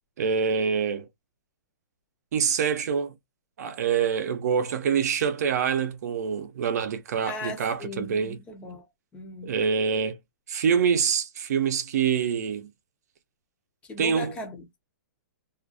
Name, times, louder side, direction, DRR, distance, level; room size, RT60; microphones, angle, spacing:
voice 1, 0.2-1.1 2.3-3.1 3.6-8.4 9.4-10.2 10.5-12.7 14.0-14.3, right 7 dB, 60° right, 0.6 m, -25 dB
voice 2, 7.3-8.9 9.1-9.5 13.8-14.8, left 2 dB, 10° left, 0.5 m, -38 dB
2.4 x 2.2 x 2.5 m
hypercardioid pair, 165°, 10 cm